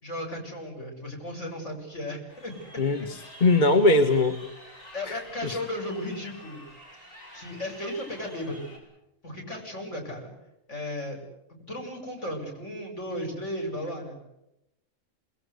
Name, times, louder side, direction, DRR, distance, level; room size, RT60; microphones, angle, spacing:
voice 1, 0.0-2.8 4.9-6.6 7.3-8.7 9.2-10.3 10.7-11.2 11.7-14.2, left 1 dB, 65° left, 3 dB, 8.1 m, -35 dB
Crowd, 2.3-8.8, equal, 80° left, 8.3 m, -48 dB
voice 2, 2.8-4.4 5.1-5.6, left 2 dB, 35° left, 6 dB, 1.6 m, -22 dB
28.5 x 21.0 x 8.3 m, 0.88 s
omnidirectional pair, 1.4 m